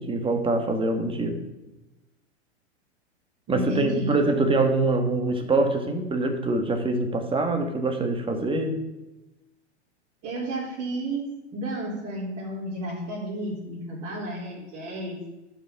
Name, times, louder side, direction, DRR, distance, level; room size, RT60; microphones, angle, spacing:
voice 1, 0.0-1.4 3.5-8.8, right 2 dB, 15° right, 6 dB, 1.5 m, -24 dB
voice 2, 3.5-4.2 10.2-15.2, right 1 dB, 45° right, -8 dB, 3.7 m, -32 dB
12.0 x 5.7 x 5.8 m, 1.0 s
hypercardioid pair, 105°, 35 cm